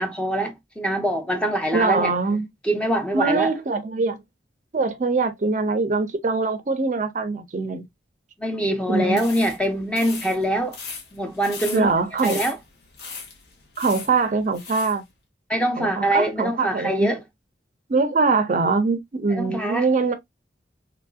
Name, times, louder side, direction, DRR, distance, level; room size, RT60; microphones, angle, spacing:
voice 1, 0.0-2.1 2.6-3.5 8.4-10.8 11.1-11.9 12.2-12.6 15.5-17.2 19.3-19.9, right 1 dB, 5° left, 0.5 m, -24 dB
voice 2, 1.7-2.5 3.1-4.2 4.7-7.8 8.9-9.2 11.7-12.4 13.8-15.0 15.8-17.2 17.9-20.1, right 4 dB, 45° right, 0.4 m, -23 dB
sound 1, 9.1-15.0, left 5 dB, 60° left, 0.8 m, -38 dB
3.0 x 2.5 x 2.3 m
head